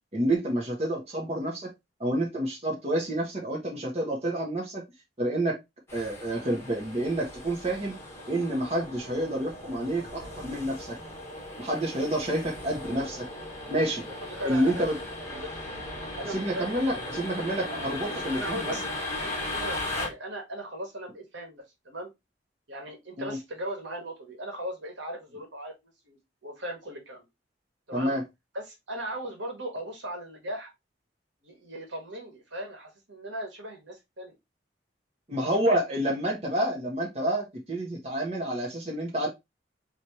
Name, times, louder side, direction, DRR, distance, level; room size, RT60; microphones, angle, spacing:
voice 1, 0.1-1.7 2.0-4.8 5.2-5.6 5.9-7.9 8.3-11.0 11.6-13.3 13.7-14.0 14.4-14.9 16.3-18.8 23.2-23.4 27.9-28.2 35.3-39.3, right 1 dB, 35° right, 1.2 m, -29 dB
sound 1, 5.9-20.1, left 2 dB, 15° left, 1.3 m, -37 dB
voice 2, 14.3-14.9 15.2-15.5 16.2-17.0 18.3-22.1 22.7-27.3 27.9-28.1 28.5-30.7 31.4-34.3, right 1 dB, 80° right, 1.5 m, -38 dB
4.2 x 3.0 x 3.0 m
head